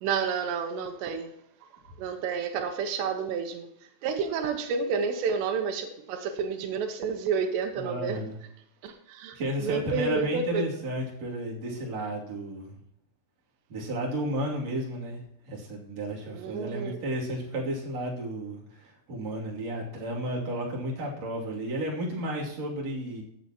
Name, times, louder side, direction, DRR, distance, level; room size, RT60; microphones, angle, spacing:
voice 1, 0.0-1.3 2.0-3.7 4.0-8.2 8.8-10.6 16.3-17.0, right 5 dB, 90° right, 6 dB, 3.3 m, -30 dB
voice 2, 7.8-8.4 9.4-12.7 13.7-23.2, right 1 dB, 45° right, -3 dB, 3.5 m, -33 dB
15.5 x 9.2 x 3.0 m, 0.73 s
omnidirectional pair, 4.9 m